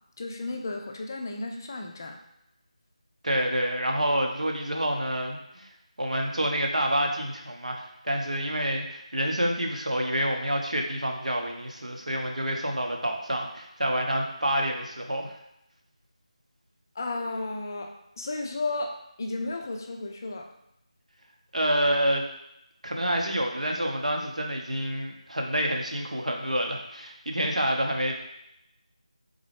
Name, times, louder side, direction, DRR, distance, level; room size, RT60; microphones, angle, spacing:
voice 1, 0.2-2.2 17.0-17.9 18.2-20.5, left 2 dB, 30° left, 3 dB, 0.4 m, -33 dB
voice 2, 3.2-5.7 6.0-15.3 21.5-22.3 22.8-28.1, equal, 70° right, 1 dB, 0.9 m, -28 dB
3.7 x 3.6 x 3.5 m, 0.81 s
figure-of-eight pair, 165°, 4 cm